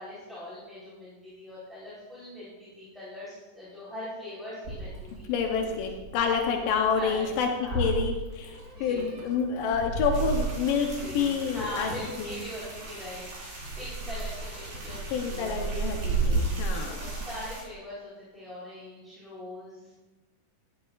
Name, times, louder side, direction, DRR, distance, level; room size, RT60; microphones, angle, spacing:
voice 1, 0.0-5.3 5.6-5.7 6.9-7.2 7.6-7.9 8.7-9.1 11.0-15.7 16.8-19.9, left 1 dB, ahead, -10 dB, 3.2 m, -41 dB
Meow, 4.6-15.9, right 3 dB, 30° right, 2.7 m, -38 dB
voice 2, 5.3-11.9 12.2-12.4 15.1-17.0, left 6 dB, 85° left, 3 dB, 2.6 m, -28 dB
sound 1, 10.1-17.6, right 3 dB, 65° right, 5.0 m, -33 dB
12.5 x 12.0 x 2.5 m, 1.1 s
omnidirectional pair, 3.8 m